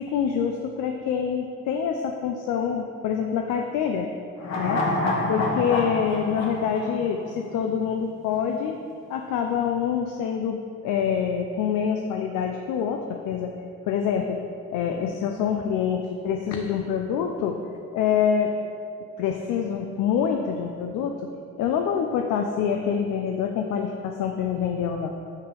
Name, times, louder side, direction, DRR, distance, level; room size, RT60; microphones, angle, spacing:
voice 1, 0.0-4.1 4.6-4.9 5.3-8.8 9.1-13.5 13.9-14.4 14.7-17.6 17.9-18.5 19.2-21.3 21.6-25.1, left 7 dB, 85° left, 3 dB, 0.5 m, -26 dB
sound 1, 4.4-7.8 8.1-8.2, left 2 dB, 60° left, 1.1 m, -27 dB
8.1 x 3.7 x 3.4 m, 2.4 s
cardioid pair, 90°, 30 cm